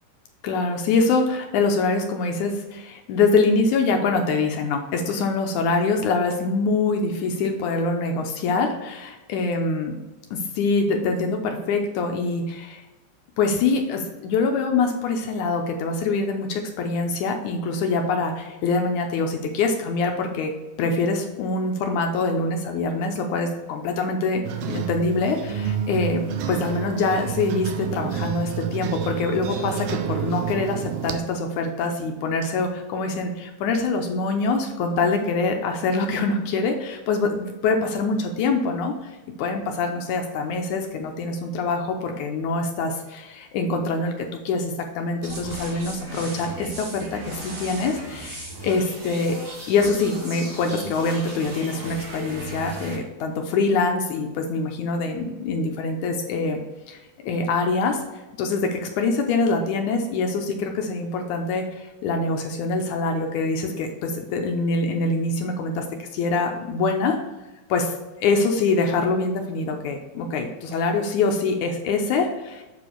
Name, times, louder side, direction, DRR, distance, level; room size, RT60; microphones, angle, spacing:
voice 1, 0.4-10.0 10.3-12.8 13.4-20.5 20.8-26.2 26.5-39.1 39.4-49.3 49.7-56.6 56.9-58.0 58.4-67.2 67.7-67.9 68.2-72.6, left 3 dB, 75° left, 3 dB, 1.9 m, -24 dB
sound 1, 24.4-31.2, right 8 dB, 80° right, 1.7 m, -29 dB
sound 2, 45.2-53.0, right 1 dB, 50° right, 0.8 m, -36 dB
7.7 x 4.4 x 4.4 m, 1.1 s
omnidirectional pair, 4.1 m